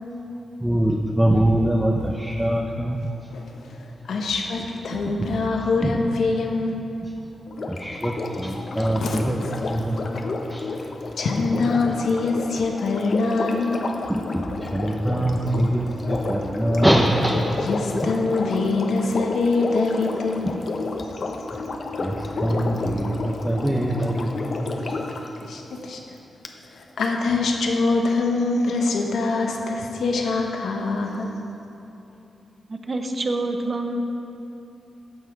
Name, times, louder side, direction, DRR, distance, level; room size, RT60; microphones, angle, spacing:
voice 1, 0.6-3.2 4.2-4.3 4.9-5.3 5.8-6.0 7.0-7.1 7.7-10.2 10.5-10.7 14.1-17.6 20.4-20.6 22.0-24.6, right 1 dB, 10° right, 0 dB, 0.8 m, -23 dB
voice 2, 4.1-6.8 9.0-9.5 11.2-13.8 17.7-20.5 25.4-26.0 26.7-31.4, left 3 dB, 80° left, 2 dB, 1.1 m, -24 dB
Sink (filling or washing), 7.5-25.3 26.4-26.5, left 3 dB, 60° left, 0.8 m, -31 dB
voice 3, 32.7-34.1, right 2 dB, 40° right, 5 dB, 1.0 m, -26 dB
14.5 x 5.7 x 4.7 m, 2.8 s
cardioid pair, 75°, 0 cm